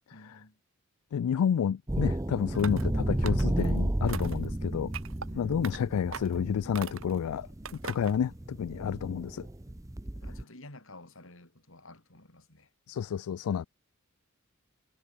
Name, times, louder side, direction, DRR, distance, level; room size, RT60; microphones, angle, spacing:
voice 1, 0.1-0.6 5.3-5.8 10.2-12.7, left 2 dB, 65° left, 5.7 m, -52 dB
voice 2, 1.1-4.9 5.4-7.5 7.8-9.5 12.9-13.7, left 8 dB, 85° left, 0.3 m, -30 dB
sound 1, 1.9-10.4, right 1 dB, 15° right, 0.6 m, -32 dB
sound 2, 2.5-2.9 3.2-3.7 4.1-4.5 4.9-5.3 5.6-5.8 6.1-6.4 6.7-7.2 7.6-8.2, right 5 dB, 65° right, 1.7 m, -40 dB
head